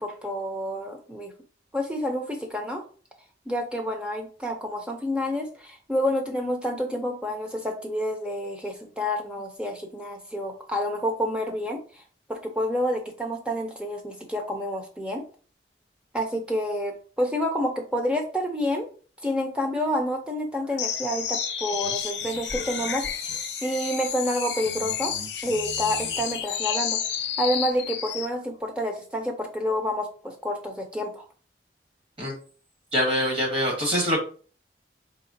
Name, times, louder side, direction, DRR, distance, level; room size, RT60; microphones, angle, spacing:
voice 1, 0.0-1.3 1.7-2.8 3.5-11.8 12.3-15.2 16.1-18.9 19.2-23.0 23.6-25.1 25.4-27.0 27.4-31.2, equal, 5° right, 2 dB, 0.7 m, -28 dB
sound 1, 20.8-28.3, left 8 dB, 80° left, 0.7 m, -30 dB
voice 2, 32.9-34.2, equal, 30° right, -1 dB, 1.5 m, -24 dB
4.1 x 3.3 x 2.7 m, 0.40 s
head